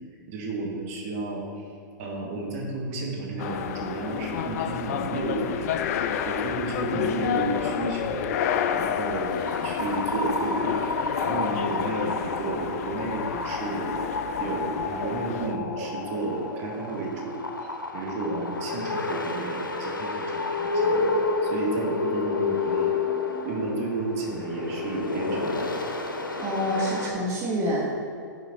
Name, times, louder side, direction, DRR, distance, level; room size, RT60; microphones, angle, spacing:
voice 1, 0.3-1.7 2.0-5.8 6.2-8.4 8.8-9.3 9.6-10.8 11.2-14.0 14.4-21.1 21.4-22.9 23.4-25.7, right 3 dB, 45° right, -1 dB, 1.3 m, -32 dB
sound 1, 3.4-15.6, left 8 dB, 50° left, 0.4 m, -30 dB
sound 2, 8.6-27.1, left 3 dB, 90° left, 0.7 m, -30 dB
voice 2, 26.4-27.9, equal, 25° right, -3 dB, 1.2 m, -27 dB
6.1 x 5.1 x 3.9 m, 2.4 s
figure-of-eight pair, 110°, 11 cm